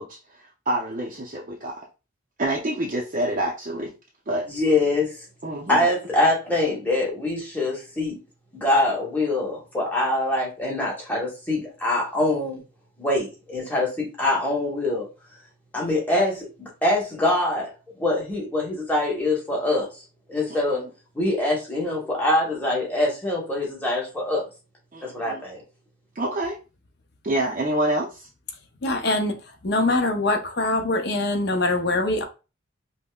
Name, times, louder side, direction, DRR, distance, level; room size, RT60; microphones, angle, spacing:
voice 1, 0.0-1.8 2.4-3.9 4.3-4.5 5.4-5.8 20.5-20.8 24.9-25.4 26.2-26.6 27.2-28.3, right 1 dB, 40° right, 0.5 m, -27 dB
voice 2, 4.5-5.1 5.7-8.2 8.5-12.6 13.0-15.1 15.7-17.7 18.0-19.9 20.3-20.8 21.1-24.4 25.0-25.6, left 2 dB, 10° left, 1.0 m, -24 dB
voice 3, 28.8-29.3 29.6-32.2, left 2 dB, 55° left, 0.6 m, -23 dB
5.2 x 2.0 x 2.2 m
head